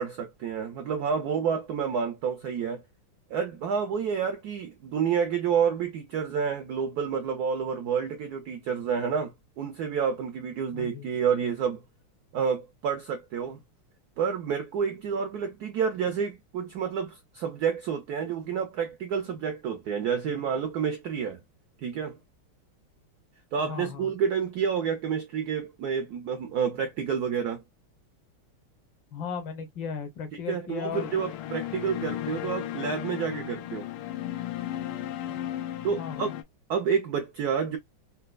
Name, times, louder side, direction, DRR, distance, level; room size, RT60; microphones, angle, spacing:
voice 1, 0.0-2.8 3.3-11.8 12.3-13.6 14.2-21.4 21.8-22.2 23.5-27.6 30.5-33.9 35.8-36.3 36.7-37.8, right 7 dB, 80° right, 0.8 m, -29 dB
voice 2, 10.7-11.1 23.6-24.1 29.1-31.1 36.0-36.3, left 6 dB, 65° left, 1.3 m, -36 dB
sound 1, 30.9-36.4, left 12 dB, 85° left, 1.5 m, -35 dB
4.3 x 2.2 x 2.3 m
omnidirectional pair, 2.3 m